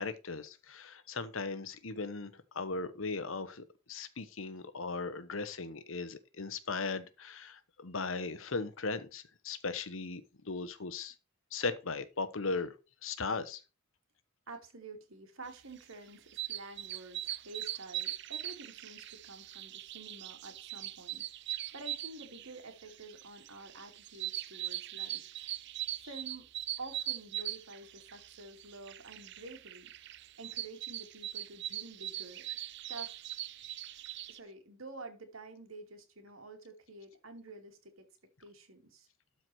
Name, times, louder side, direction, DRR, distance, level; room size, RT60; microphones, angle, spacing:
voice 1, 0.0-11.1 11.5-12.7 13.0-13.6, left 4 dB, 75° left, 1.1 m, -38 dB
voice 2, 14.5-21.5 21.7-25.5 26.0-26.5 26.8-30.1 30.4-32.5 32.9-33.3 34.3-38.1 38.4-39.1, right 2 dB, 85° right, 2.5 m, -49 dB
sound 1, 15.7-34.4, right 13 dB, 55° right, 0.5 m, -41 dB
12.5 x 4.8 x 4.5 m
head